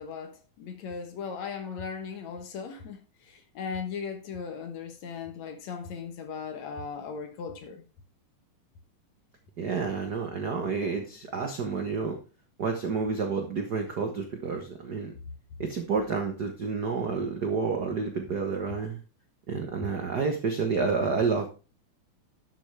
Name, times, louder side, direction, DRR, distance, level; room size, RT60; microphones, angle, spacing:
voice 1, 0.0-3.0 3.3-7.8, left 6 dB, 65° left, 2.4 m, -37 dB
voice 2, 9.6-12.2 12.6-15.1 15.6-19.0 19.5-21.5, right 5 dB, 75° right, 0.9 m, -29 dB
12.0 x 7.1 x 3.4 m
omnidirectional pair, 3.8 m